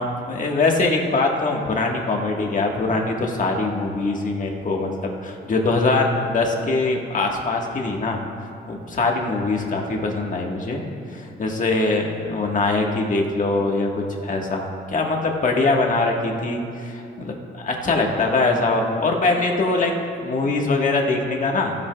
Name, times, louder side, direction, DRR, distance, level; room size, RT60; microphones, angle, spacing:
voice 1, 0.0-8.2 8.7-10.8 11.1-13.9 14.2-21.7, left 3 dB, 40° left, 0 dB, 1.6 m, -22 dB
15.5 x 10.5 x 2.4 m, 2.5 s
cardioid pair, 90°, 20 cm